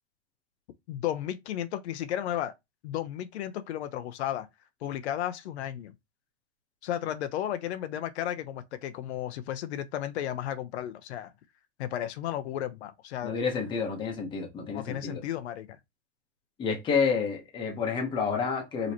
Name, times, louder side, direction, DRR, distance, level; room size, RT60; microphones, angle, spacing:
voice 1, 0.9-2.5 2.8-4.5 4.8-5.9 6.8-11.3 11.8-13.3 14.7-15.8, left 11 dB, 85° left, 0.8 m, -33 dB
voice 2, 13.2-15.2 16.6-18.9, left 5 dB, 15° left, 1.0 m, -29 dB
5.1 x 3.1 x 2.9 m
supercardioid pair, 170°, 33 cm